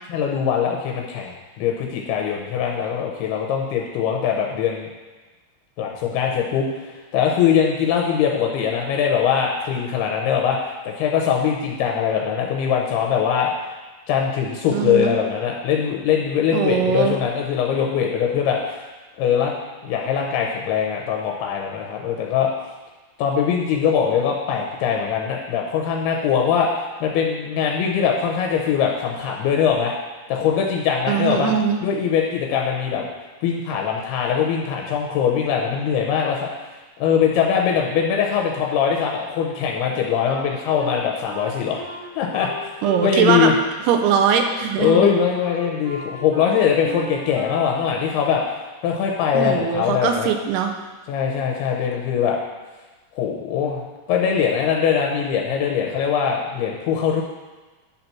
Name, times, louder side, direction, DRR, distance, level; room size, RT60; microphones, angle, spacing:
voice 1, 0.1-4.9 5.8-13.5 14.1-18.8 19.2-19.6 19.8-22.5 23.2-30.0 30.3-31.5 31.8-33.1 33.4-36.7 37.0-41.8 42.2-42.7 43.0-43.5 44.8-48.4 48.8-50.3 51.1-52.4 53.2-57.2, left 7 dB, 85° left, 0 dB, 2.6 m, -22 dB
voice 2, 14.7-15.1 16.5-17.2 31.1-31.8 42.8-43.5 43.9-45.1 49.3-50.7, right 7 dB, 85° right, 5 dB, 2.7 m, -21 dB
Wind instrument woodwind instrument, 40.2-43.1 43.4-47.9, right 3 dB, 60° right, 2.5 m, -36 dB
10.5 x 4.1 x 5.9 m, 1.2 s
omnidirectional pair, 4.7 m